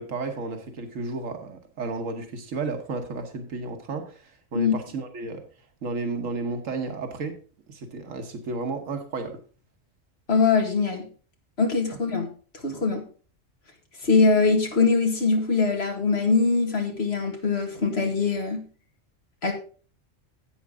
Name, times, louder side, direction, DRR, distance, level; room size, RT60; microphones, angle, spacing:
voice 1, 0.0-5.4 5.8-7.4 7.7-9.4 11.9-12.0, right 3 dB, 85° right, 6 dB, 1.6 m, -32 dB
voice 2, 10.3-11.1 11.6-12.3 12.5-13.0 14.0-18.7 19.4-19.5, left 4 dB, 55° left, 3 dB, 2.1 m, -22 dB
11.0 x 8.3 x 3.7 m, 0.39 s
omnidirectional pair, 1.3 m